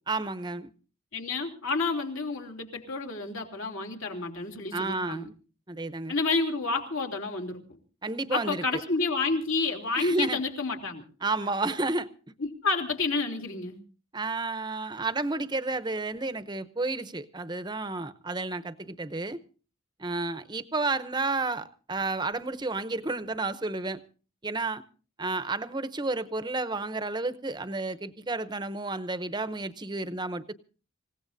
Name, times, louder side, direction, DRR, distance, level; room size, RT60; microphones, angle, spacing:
voice 1, 0.1-0.7 4.7-5.3 5.7-6.1 8.0-8.8 10.0-10.4 11.2-12.1 14.1-19.4 20.0-24.0 24.4-24.8 25.2-30.5, right 3 dB, 20° right, 0.7 m, -31 dB
voice 2, 1.1-5.3 6.1-7.6 8.3-11.0 12.4-13.8, left 3 dB, 70° left, 3.1 m, -29 dB
27.0 x 17.0 x 2.7 m
head